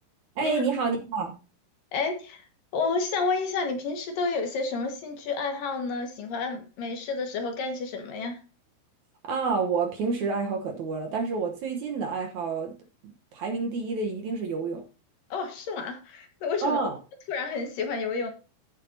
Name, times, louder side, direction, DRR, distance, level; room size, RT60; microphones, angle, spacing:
voice 1, 0.4-1.4 9.3-12.7 13.3-14.8 16.6-17.0, right 4 dB, 65° right, 2.2 m, -28 dB
voice 2, 1.9-2.4 2.7-8.4 15.3-16.8 17.3-18.3, left 4 dB, 70° left, 3.1 m, -30 dB
15.0 x 7.4 x 2.8 m
omnidirectional pair, 4.3 m